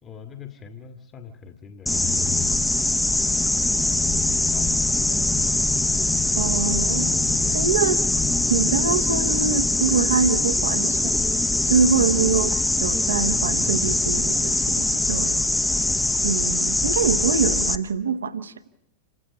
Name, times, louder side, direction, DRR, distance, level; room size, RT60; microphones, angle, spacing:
voice 1, 0.0-2.3 3.2-4.1 4.5-5.5, left 6 dB, 25° left, 6 dB, 1.7 m, -44 dB
sound 1, 1.9-17.8, left 2 dB, 5° left, 1.0 m, -22 dB
voice 2, 6.4-7.1 7.5-8.0 8.5-11.1 11.7-15.4 16.2-18.5, right 6 dB, 70° right, 9 dB, 1.2 m, -24 dB
27.5 x 16.0 x 8.8 m, 0.80 s
figure-of-eight pair, 90°, 0 cm